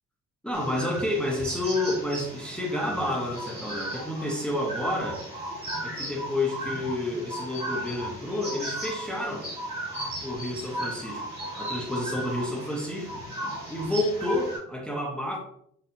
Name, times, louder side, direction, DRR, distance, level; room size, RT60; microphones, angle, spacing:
voice 1, 0.4-5.2 5.8-9.5 10.2-11.2 11.6-13.1 13.7-15.4, left 1 dB, 5° left, -2 dB, 0.9 m, -29 dB
sound 1, 0.5-14.6, right 1 dB, 20° right, 1.4 m, -36 dB
4.4 x 2.6 x 2.7 m, 0.67 s
cardioid pair, 90°, 30 cm